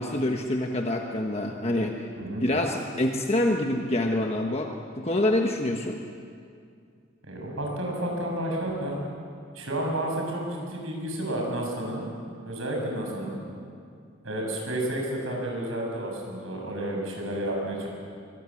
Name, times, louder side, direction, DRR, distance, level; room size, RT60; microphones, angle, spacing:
voice 1, 0.0-2.0 2.4-4.7 5.0-6.0, left 1 dB, 30° left, 2 dB, 1.4 m, -26 dB
voice 2, 7.2-9.0 9.5-12.0 12.5-13.4 14.2-17.9, right 1 dB, 75° right, 0 dB, 7.4 m, -31 dB
24.0 x 23.5 x 8.6 m, 2.3 s
head